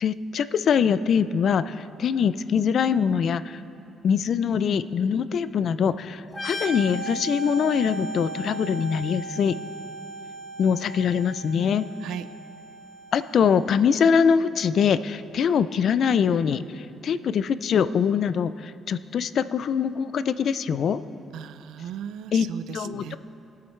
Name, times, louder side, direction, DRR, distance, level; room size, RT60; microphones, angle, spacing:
voice 1, 0.0-3.6 4.0-9.5 10.6-11.9 13.1-21.0 22.3-22.5 22.7-23.2, left 7 dB, 55° left, 14 dB, 0.4 m, -23 dB
sound 1, 6.3-13.8, right 2 dB, 25° left, 1.7 m, -37 dB
voice 2, 21.3-23.2, right 9 dB, 90° right, 14 dB, 0.4 m, -37 dB
21.5 x 8.6 x 3.2 m, 2.7 s
cardioid pair, 130°, 0 cm